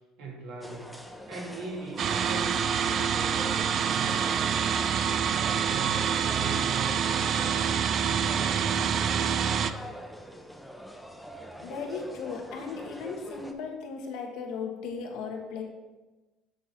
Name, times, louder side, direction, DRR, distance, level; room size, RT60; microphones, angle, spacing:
voice 1, 0.2-1.0 1.3-4.7 5.2-7.7 8.0-9.3, right 3 dB, 80° right, -2 dB, 1.9 m, -40 dB
sound 1, 0.6-13.5, equal, ahead, 0.6 m, -43 dB
sound 2, 2.0-9.7, right 7 dB, 50° right, 0.3 m, -26 dB
voice 2, 11.6-15.6, left 5 dB, 80° left, 1 dB, 1.2 m, -36 dB
7.5 x 3.8 x 4.4 m, 1.2 s
cardioid pair, 110°, 0 cm